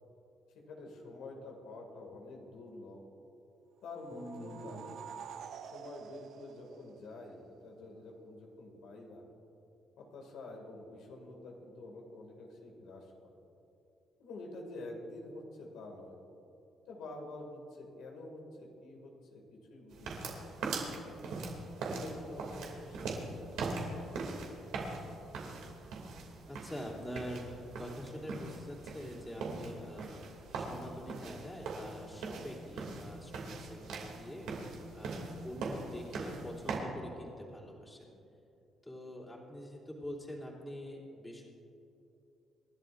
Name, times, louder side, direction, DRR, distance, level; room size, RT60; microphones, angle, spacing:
voice 1, 0.7-3.0 3.8-4.9 5.6-9.2 10.0-13.4 14.2-16.2 16.9-20.9 21.7-24.2, left 2 dB, 90° left, 0 dB, 2.3 m, -48 dB
sound 1, 3.9-7.5, right 8 dB, 65° right, 0.6 m, -49 dB
voice 2, 4.1-4.9 26.5-30.2 30.5-34.5 34.9-38.2 38.8-41.4, equal, 10° left, -4 dB, 3.0 m, -45 dB
sound 2, 19.9-36.8, right 3 dB, 90° right, 2.7 m, -41 dB
27.5 x 12.0 x 2.6 m, 2.9 s
cardioid pair, 115°, 0 cm